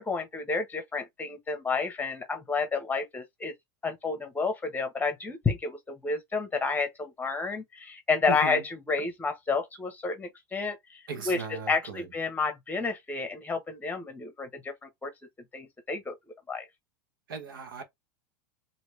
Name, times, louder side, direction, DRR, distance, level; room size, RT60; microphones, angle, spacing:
voice 1, 0.0-3.5 3.8-10.8 11.2-11.4 11.7-14.7 15.0-15.1 15.5-16.1 16.5-16.7, left 4 dB, 15° left, 1.2 m, -30 dB
voice 2, 8.3-8.6 11.1-12.1 17.3-17.8, right 5 dB, 85° right, 1.1 m, -37 dB
2.9 x 2.8 x 3.2 m
hypercardioid pair, 105°, 11 cm